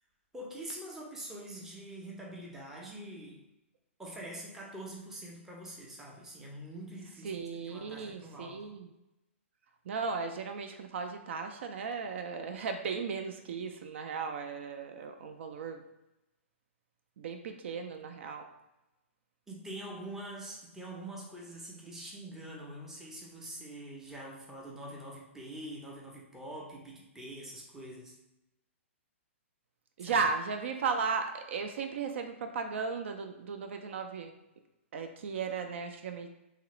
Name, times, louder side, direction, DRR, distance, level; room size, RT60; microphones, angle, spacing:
voice 1, 0.3-3.5 4.0-7.4 7.7-8.7 19.5-28.2 30.0-30.2, right 1 dB, 5° right, -2 dB, 0.5 m, -45 dB
voice 2, 7.2-8.9 9.9-15.8 17.2-18.5 30.0-34.3 34.9-36.3, right 5 dB, 60° right, 5 dB, 0.4 m, -36 dB
2.8 x 2.4 x 3.0 m, 0.91 s
hypercardioid pair, 145°, 7 cm